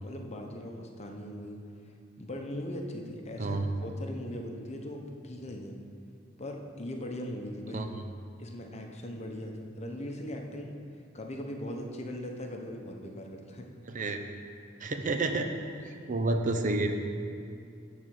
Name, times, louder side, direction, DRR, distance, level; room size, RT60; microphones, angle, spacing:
voice 1, 0.0-5.8 6.4-7.9 8.4-10.8 11.1-13.7, left 1 dB, 35° left, 2 dB, 0.9 m, -40 dB
voice 2, 13.9-14.2 14.8-15.5 16.1-17.0, right 2 dB, 40° right, 5 dB, 0.6 m, -29 dB
11.0 x 4.1 x 7.6 m, 2.5 s
head